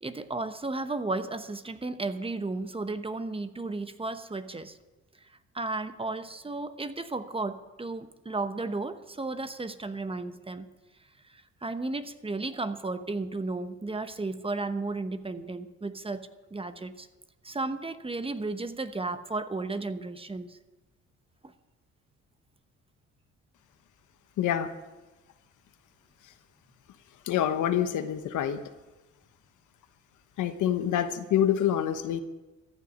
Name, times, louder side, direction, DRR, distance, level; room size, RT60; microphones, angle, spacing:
voice 1, 0.0-4.8 5.2-5.3 5.5-10.7 11.3-17.1 17.4-20.6, right 3 dB, 20° right, 10 dB, 1.0 m, -34 dB
voice 2, 24.4-24.7 27.3-28.6 30.4-32.2, left 10 dB, 85° left, 10 dB, 1.2 m, -26 dB
14.5 x 7.0 x 9.8 m, 1.1 s
cardioid pair, 90°, 30 cm